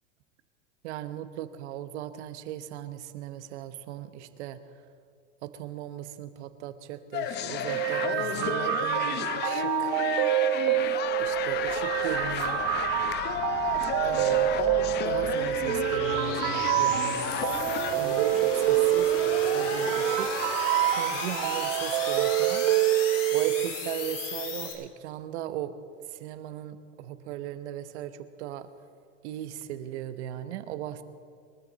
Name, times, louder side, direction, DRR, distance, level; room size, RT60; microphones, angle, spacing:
voice 1, 0.8-4.6 5.4-10.0 11.2-12.7 14.0-14.6 15.0-17.3 17.9-19.1 19.5-20.3 20.9-22.9 23.3-25.8 26.1-28.7 29.2-31.0, right 12 dB, 65° right, 11 dB, 1.2 m, -37 dB
sound 1, 7.1-18.0, left 10 dB, 30° left, 0.7 m, -32 dB
sound 2, 7.7-23.7, right 14 dB, 50° right, 0.9 m, -27 dB
sound 3, 10.9-24.7, left 3 dB, 85° left, 3.7 m, -36 dB
23.0 x 13.0 x 4.1 m, 2.1 s
supercardioid pair, 130°, 36 cm